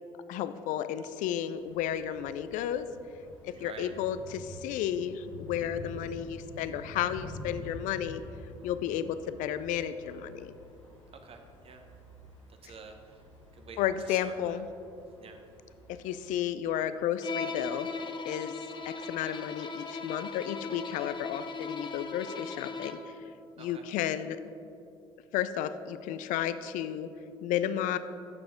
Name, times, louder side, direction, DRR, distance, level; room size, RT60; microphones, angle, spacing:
voice 1, 0.3-2.9 3.4-8.2 8.6-10.5 13.8-14.7 16.0-17.9 18.3-18.5 18.9-23.0 23.6-24.4 25.3-27.1 27.4-28.0, left 10 dB, 55° left, 13 dB, 0.5 m, -32 dB
sound 1, 1.5-16.3, left 1 dB, 90° left, 1.8 m, -48 dB
voice 2, 3.5-3.9 11.1-11.8 12.6-13.2 13.5-13.8 14.0-14.6 15.2-15.4 23.6-23.8, right 5 dB, 40° right, 5 dB, 1.1 m, -48 dB
Bowed string instrument, 17.2-23.2, left 4 dB, 30° left, 0.7 m, -38 dB
10.5 x 6.8 x 3.7 m, 2.7 s
figure-of-eight pair, 55°, 16 cm